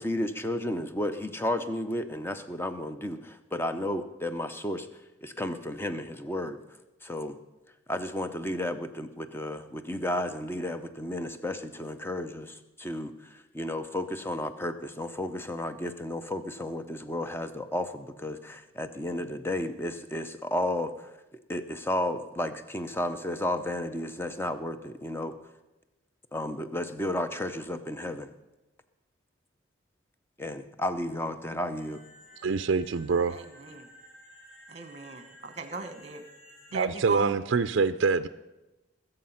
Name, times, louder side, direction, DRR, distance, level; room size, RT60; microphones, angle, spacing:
voice 1, 0.0-4.9 5.2-6.6 7.0-7.4 7.9-20.9 21.5-25.3 26.3-28.3 30.4-32.0, left 1 dB, 10° left, 9 dB, 0.6 m, -33 dB
sound 1, 31.8-36.8, equal, 65° left, 2.8 m, -54 dB
voice 2, 32.4-33.4 36.7-38.3, right 4 dB, 60° right, 11 dB, 0.4 m, -25 dB
voice 3, 33.3-33.9 34.7-36.2 36.7-37.4, right 4 dB, 30° right, 10 dB, 1.2 m, -36 dB
21.5 x 7.9 x 5.7 m, 1.0 s
head